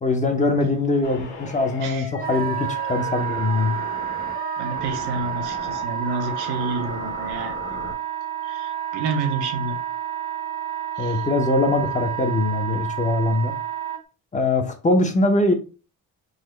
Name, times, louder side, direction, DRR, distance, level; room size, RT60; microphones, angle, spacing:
voice 1, 0.0-3.8 11.0-13.5 14.3-15.5, left 2 dB, 20° left, 0.6 m, -22 dB
sound 1, 1.0-7.9, left 4 dB, 80° left, 1.6 m, -37 dB
Wind instrument woodwind instrument, 2.2-14.0, right 11 dB, 25° right, 0.7 m, -30 dB
voice 2, 4.6-7.6 8.4-9.8 11.0-11.3, right 3 dB, 75° right, 0.9 m, -29 dB
3.8 x 2.1 x 3.1 m
cardioid pair, 100°, 38 cm